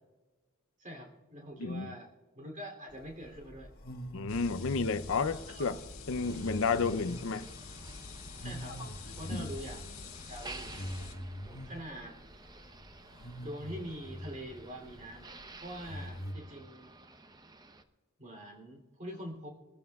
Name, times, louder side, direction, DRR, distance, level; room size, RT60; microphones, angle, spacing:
voice 1, 0.8-3.7 5.3-5.8 8.4-8.8 9.2-10.8 11.6-12.2 13.4-16.9 18.2-19.5, equal, 35° right, 2.9 m, -45 dB
voice 2, 1.6-1.9 4.1-5.8 6.1-7.5 9.3-9.5, left 4 dB, 65° left, 0.5 m, -31 dB
sound 1, 2.9-16.3, equal, 45° left, 1.3 m, -45 dB
sound 2, 4.3-11.1, left 4 dB, 85° left, 2.0 m, -46 dB
Motor vehicle (road), 6.2-17.8, right 3 dB, 20° right, 0.7 m, -52 dB
22.5 x 14.5 x 2.3 m
head